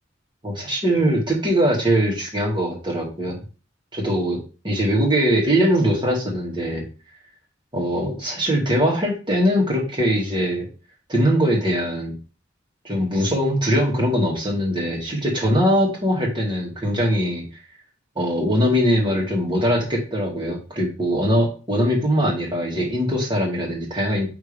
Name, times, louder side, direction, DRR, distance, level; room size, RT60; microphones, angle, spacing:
voice 1, 0.4-3.4 3.9-4.4 4.6-6.8 7.7-10.7 11.1-12.2 12.8-17.4 18.2-24.3, equal, 25° right, -1 dB, 2.3 m, -21 dB
9.4 x 3.7 x 3.4 m, 0.35 s
head